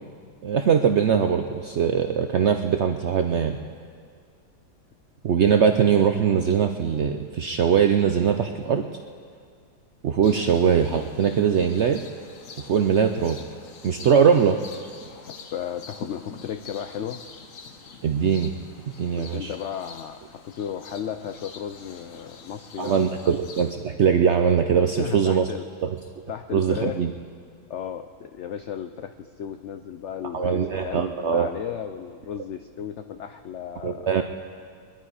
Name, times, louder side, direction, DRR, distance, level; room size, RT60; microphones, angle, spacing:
voice 1, 0.4-3.6 5.2-8.8 10.0-12.0 12.6-13.4 13.8-14.6 18.0-18.5 18.9-19.5 22.8-25.5 25.8-25.9 26.5-27.1 30.3-31.5 33.8-34.2, right 7 dB, 70° right, 6 dB, 0.6 m, -21 dB
sound 1, 10.2-23.7, left 5 dB, 55° left, 1.3 m, -45 dB
voice 2, 15.5-17.2 19.2-23.4 25.0-25.7 26.3-27.0 27.7-34.1, left 9 dB, 85° left, 8 dB, 0.6 m, -34 dB
23.0 x 11.5 x 4.8 m, 2.1 s
omnidirectional pair, 1.8 m